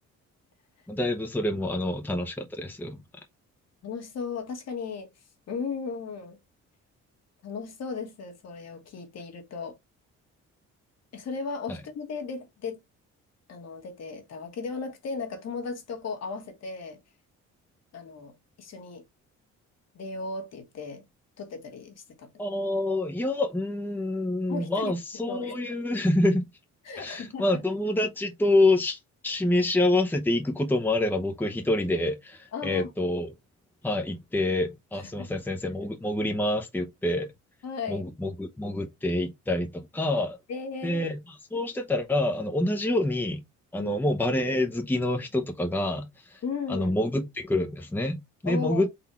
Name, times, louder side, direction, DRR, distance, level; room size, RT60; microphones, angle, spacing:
voice 1, 0.9-3.0 11.7-11.8 22.4-26.5 27.0-33.3 33.8-37.3 37.9-40.4 40.8-41.2 41.5-43.4 43.7-46.4 46.7-48.9, left 1 dB, 5° left, 0.8 m, -27 dB
voice 2, 3.8-5.1 5.5-6.4 7.4-9.8 11.1-12.8 13.5-17.0 17.9-19.0 19.9-21.0 21.4-22.3 24.5-25.0 25.3-25.7 26.8-27.6 32.5-32.9 35.0-35.3 37.6-38.0 40.5-41.1 43.8-43.9 46.4-46.9 48.4-48.9, left 5 dB, 60° left, 1.5 m, -36 dB
4.1 x 2.7 x 4.4 m
cardioid pair, 90°, 30 cm